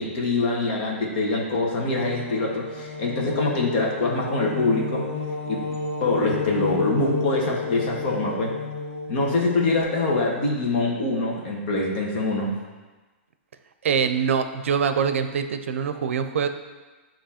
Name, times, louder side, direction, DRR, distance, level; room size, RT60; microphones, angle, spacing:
voice 1, 0.0-5.1 5.5-5.6 6.0-8.5 9.1-12.5, left 2 dB, 45° left, -2 dB, 1.3 m, -24 dB
sound 1, 1.9-9.8, left 4 dB, 70° left, 1.3 m, -32 dB
voice 2, 13.8-16.5, right 7 dB, 80° right, 9 dB, 0.5 m, -24 dB
8.5 x 3.0 x 4.3 m, 1.3 s
hypercardioid pair, 145°, 7 cm